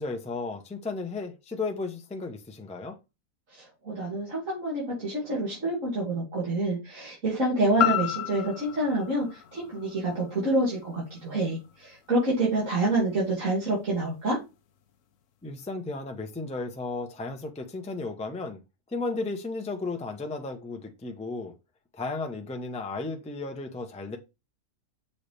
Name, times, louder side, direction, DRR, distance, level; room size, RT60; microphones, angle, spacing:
voice 1, 0.0-3.0 15.4-18.6 18.9-21.5 21.9-24.2, left 3 dB, 5° left, 0.5 m, -34 dB
voice 2, 3.5-14.4, right 2 dB, 50° right, 3.0 m, -27 dB
sound 1, 7.8-11.9 12.3-12.4, left 12 dB, 60° left, 0.9 m, -32 dB
6.7 x 4.2 x 3.4 m
omnidirectional pair, 1.7 m